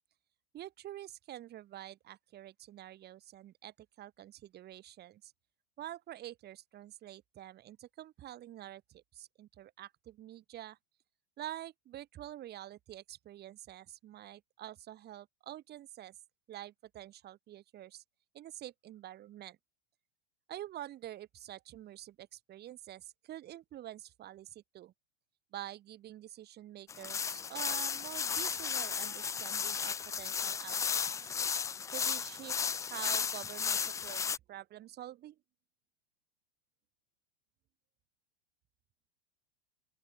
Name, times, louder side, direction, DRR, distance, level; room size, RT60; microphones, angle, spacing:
voice 1, 0.5-5.3 5.8-10.8 11.4-16.2 16.5-18.0 18.3-19.6 20.5-24.9 25.5-31.3 31.9-35.4, right 13 dB, 30° right, 2.0 m, -47 dB
sound 1, 26.9-34.4, left 6 dB, 10° left, 0.4 m, -34 dB
open air
hypercardioid pair, 120°, 32 cm